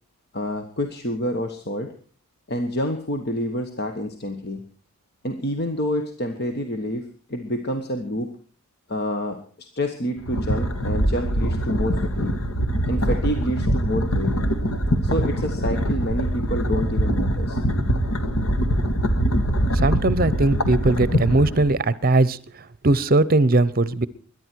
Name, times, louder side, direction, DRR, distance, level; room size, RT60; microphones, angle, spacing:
voice 1, 0.3-1.9 2.5-4.6 5.2-8.3 8.9-12.3 12.9-14.5 15.0-17.6, equal, 50° left, 6 dB, 1.3 m, -28 dB
sound 1, 10.2-21.7, equal, 80° left, 1.8 m, -23 dB
voice 2, 19.7-24.1, right 2 dB, 45° right, 19 dB, 0.8 m, -20 dB
22.0 x 11.0 x 4.6 m, 0.43 s
head